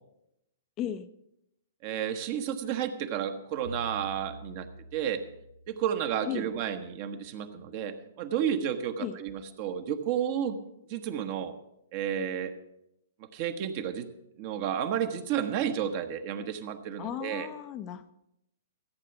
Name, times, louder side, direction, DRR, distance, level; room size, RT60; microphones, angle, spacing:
voice 1, 0.8-1.1 6.3-6.5 9.0-9.2 17.0-18.2, left 10 dB, 30° left, 10 dB, 0.6 m, -35 dB
voice 2, 1.8-5.2 5.7-10.6 10.9-11.5 11.9-12.5 13.3-14.1 14.4-17.5, right 9 dB, 40° right, 8 dB, 1.1 m, -31 dB
sound 1, 3.6-6.4, right 1 dB, 70° left, 1.7 m, -46 dB
14.5 x 8.6 x 5.7 m, 0.81 s
figure-of-eight pair, 115°, 0 cm